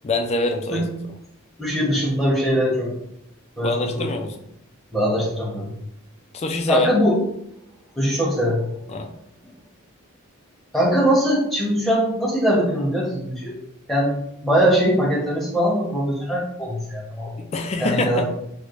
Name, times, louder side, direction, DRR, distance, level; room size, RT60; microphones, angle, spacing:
voice 1, 0.0-0.9 3.6-4.4 6.3-6.9 8.9-9.1 17.4-18.3, left 2 dB, 30° left, 4 dB, 0.3 m, -24 dB
voice 2, 1.6-2.9 3.6-4.1 4.9-5.7 6.7-7.2 8.0-8.6 10.7-13.5 13.9-14.1 14.4-17.3 17.8-18.3, equal, ahead, -5 dB, 0.9 m, -21 dB
4.5 x 2.1 x 2.5 m, 0.79 s
head